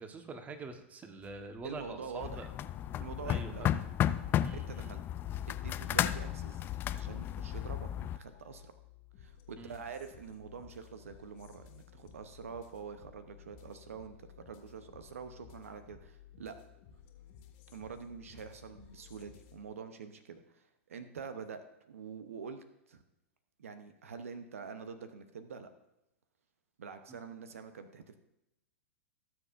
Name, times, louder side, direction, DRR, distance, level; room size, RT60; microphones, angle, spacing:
voice 1, 0.0-2.5 3.2-3.8 4.4-4.9 9.6-9.8 27.1-27.2, right 3 dB, 20° right, 7 dB, 1.2 m, -45 dB
sound 1, 1.2-19.6, left 10 dB, 50° left, 1.9 m, -57 dB
voice 2, 1.6-2.5 3.0-3.7 4.5-5.0 5.5-8.7 9.2-16.6 17.7-23.0 23.6-25.7 26.8-28.2, right 6 dB, 80° right, 9 dB, 0.8 m, -46 dB
sound 2, 2.2-8.2, left 11 dB, 30° left, 0.4 m, -33 dB
18.0 x 7.1 x 2.6 m, 0.88 s
hypercardioid pair, 110°, 7 cm